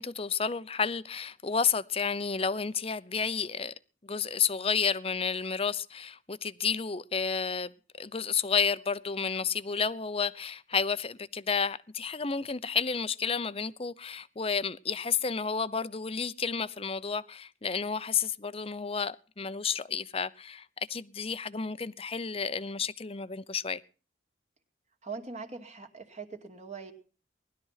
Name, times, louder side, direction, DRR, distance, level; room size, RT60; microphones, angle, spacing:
voice 1, 0.0-3.7 4.1-7.7 8.0-23.8, left 6 dB, 30° left, 0.8 m, -31 dB
voice 2, 25.0-26.9, right 4 dB, 40° right, 2.4 m, -41 dB
19.5 x 12.5 x 5.8 m
head